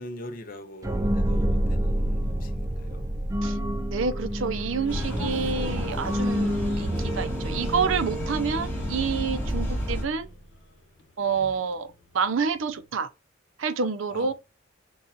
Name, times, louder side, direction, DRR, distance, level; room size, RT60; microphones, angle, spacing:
voice 1, 0.0-3.1 11.3-11.6 14.1-14.3, left 1 dB, 45° left, 0.6 m, -42 dB
sound 1, 0.8-10.5, equal, 15° right, 0.3 m, -29 dB
voice 2, 3.9-10.3 11.2-11.9 12.1-13.1 13.6-14.3, right 5 dB, 75° right, 0.5 m, -28 dB
sound 2, 4.3-12.9, left 1 dB, 70° left, 1.2 m, -50 dB
sound 3, 4.9-10.0, left 1 dB, 10° left, 2.0 m, -31 dB
6.5 x 2.3 x 2.8 m
head